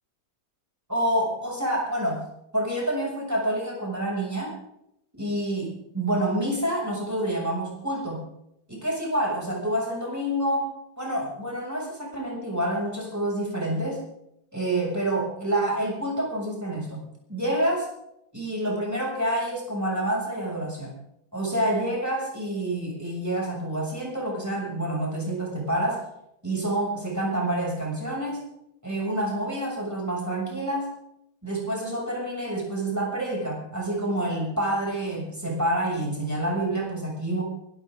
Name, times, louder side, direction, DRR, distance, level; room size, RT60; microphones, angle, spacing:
voice 1, 0.9-2.2 2.5-4.5 5.2-8.2 8.7-10.7 11.0-14.0 14.5-17.0 17.3-17.9 18.3-20.9 21.3-26.1 26.4-28.4 28.8-30.9 31.4-37.4, right 1 dB, 10° right, -2 dB, 6.7 m, -28 dB
24.5 x 13.0 x 3.8 m, 0.78 s
omnidirectional pair, 1.8 m